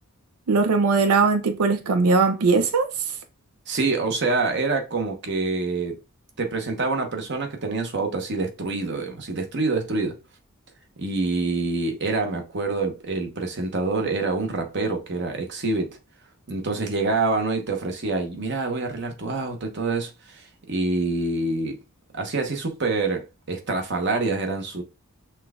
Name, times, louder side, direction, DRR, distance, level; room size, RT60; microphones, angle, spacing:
voice 1, 0.5-2.9, right 4 dB, 85° right, 0.5 m, -20 dB
voice 2, 3.7-6.0 6.4-10.2 11.0-16.0 16.5-21.8 22.1-24.8, right 3 dB, 50° right, 1.0 m, -26 dB
5.8 x 2.3 x 3.5 m
head